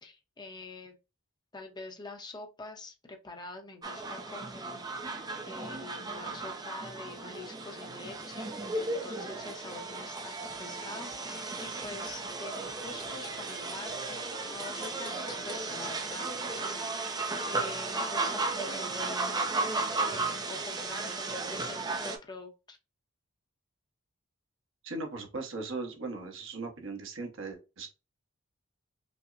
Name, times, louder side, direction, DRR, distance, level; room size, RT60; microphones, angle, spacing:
voice 1, 0.0-0.9 1.5-5.1 5.4-8.5 8.7-19.5 20.0-22.8, left 3 dB, 20° left, 0.7 m, -46 dB
sound 1, 3.8-22.2, right 3 dB, 20° right, 0.5 m, -35 dB
voice 2, 24.8-27.9, right 3 dB, 65° right, 1.0 m, -38 dB
5.3 x 2.0 x 2.5 m
head